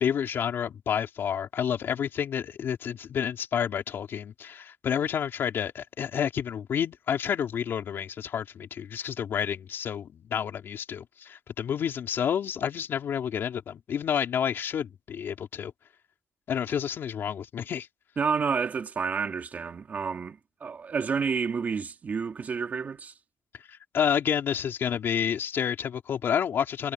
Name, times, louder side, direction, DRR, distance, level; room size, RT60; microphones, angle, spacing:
voice 1, 0.0-15.7 16.5-17.9 23.7-26.9, left 8 dB, 60° left, 3.3 m, -29 dB
voice 2, 18.2-23.1, right 5 dB, 40° right, 2.6 m, -30 dB
cardioid pair, 130°, 4 cm